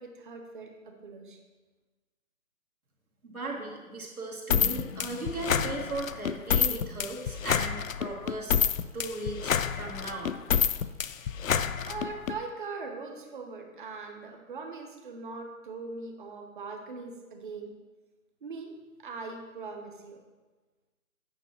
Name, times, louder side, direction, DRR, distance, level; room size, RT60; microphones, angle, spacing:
voice 1, 0.0-1.4 11.8-17.7 18.4-20.2, right 4 dB, 35° right, 4 dB, 1.0 m, -41 dB
voice 2, 3.2-8.6 8.9-10.4, right 2 dB, 80° right, -1 dB, 2.2 m, -37 dB
sound 1, 4.5-12.3, left 8 dB, 70° left, 0.5 m, -28 dB
9.0 x 5.9 x 4.4 m, 1.3 s
figure-of-eight pair, 150°, 42 cm